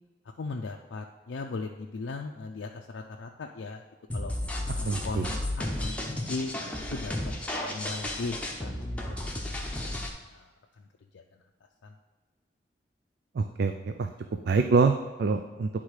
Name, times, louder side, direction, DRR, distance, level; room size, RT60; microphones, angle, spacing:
voice 1, 0.4-3.8 4.1-4.3 4.7-8.7 9.1-10.9 11.1-11.2 11.8-12.0, left 3 dB, 80° left, 1 dB, 0.5 m, -39 dB
sound 1, 4.1-10.1, left 1 dB, 5° left, 0.9 m, -33 dB
voice 2, 4.9-5.3 13.3-14.1 14.5-14.9 15.2-15.7, right 4 dB, 60° right, 7 dB, 0.4 m, -25 dB
9.7 x 3.7 x 4.8 m, 1.3 s
head